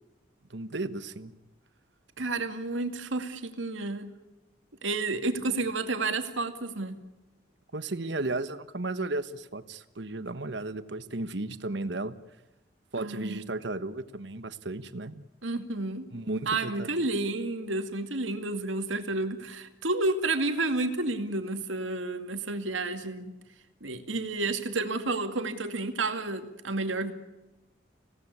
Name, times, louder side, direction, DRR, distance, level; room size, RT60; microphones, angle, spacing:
voice 1, 0.5-1.3 5.4-5.5 7.7-12.1 12.9-15.2 16.1-16.9, right 2 dB, 65° right, 12 dB, 1.2 m, -34 dB
voice 2, 2.2-4.1 4.8-7.0 13.0-13.4 15.4-16.1 16.5-23.3 23.8-27.1, right 2 dB, 90° right, 7 dB, 2.3 m, -30 dB
25.5 x 17.5 x 9.7 m, 1.0 s
head